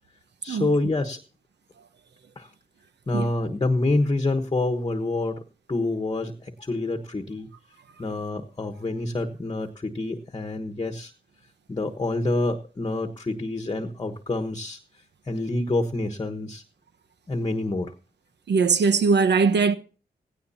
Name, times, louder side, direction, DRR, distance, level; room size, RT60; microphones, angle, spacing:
voice 1, 0.4-1.2 2.4-2.5 3.1-5.3 5.7-7.5 8.0-11.1 11.7-14.8 15.3-16.6 17.3-17.9, left 2 dB, 25° left, 1.2 m, -27 dB
voice 2, 18.5-19.7, right 5 dB, 75° right, 1.1 m, -20 dB
17.0 x 16.5 x 2.8 m
wide cardioid pair, 125°, 18 cm